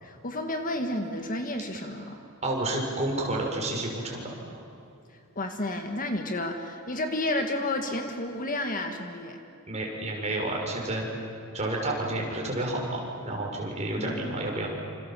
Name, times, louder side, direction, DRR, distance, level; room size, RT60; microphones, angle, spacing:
voice 1, 0.0-2.2 5.4-9.4 14.0-14.4, left 1 dB, 40° left, 5 dB, 1.9 m, -31 dB
voice 2, 2.4-4.3 9.7-11.0 11.5-14.7, right 1 dB, 30° right, -1 dB, 6.2 m, -30 dB
28.0 x 28.0 x 7.7 m, 2.6 s
head